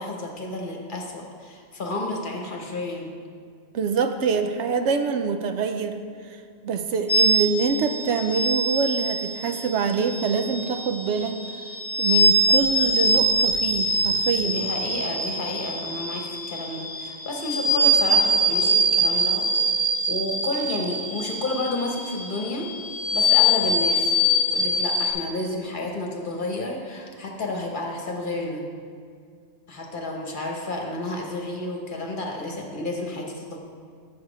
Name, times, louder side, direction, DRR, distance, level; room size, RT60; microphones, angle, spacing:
voice 1, 0.0-3.2 14.4-22.7 23.1-28.6 29.7-33.6, left 2 dB, 45° left, 0 dB, 1.1 m, -31 dB
voice 2, 3.7-6.0 6.6-11.7 12.0-14.6, right 5 dB, 75° right, 7 dB, 0.9 m, -25 dB
sound 1, 7.1-25.1, equal, 20° left, 1.1 m, -23 dB
7.3 x 7.0 x 4.9 m, 2.2 s
omnidirectional pair, 1.2 m